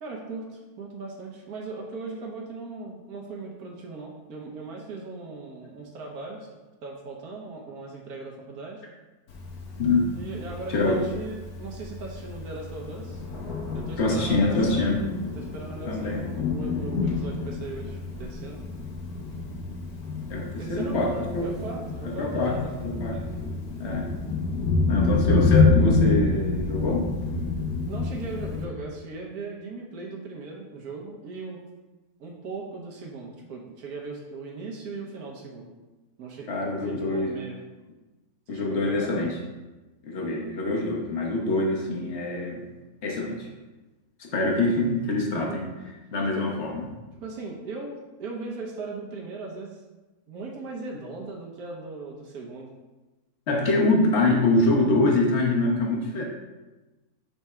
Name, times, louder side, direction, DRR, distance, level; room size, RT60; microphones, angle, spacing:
voice 1, 0.0-6.5 6.8-8.8 10.1-13.2 13.7-18.6 20.6-22.8 27.9-31.6 32.2-35.7 36.2-37.6 38.5-39.2 45.3-45.6 46.3-46.4 47.2-49.8 50.3-52.7, right 3 dB, 85° right, -1 dB, 1.4 m, -38 dB
Thunder, 9.3-28.6, left 3 dB, 80° left, 1.5 m, -28 dB
voice 2, 14.0-15.0 15.9-16.3 20.3-21.5 22.2-22.6 22.8-23.2 23.8-24.1 24.9-27.0 36.5-37.3 38.5-39.4 40.0-42.6 43.0-43.5 44.2-45.7 46.1-46.9 53.5-56.2, left 2 dB, 50° left, -1 dB, 1.3 m, -24 dB
6.8 x 3.6 x 4.3 m, 1.1 s
omnidirectional pair, 1.5 m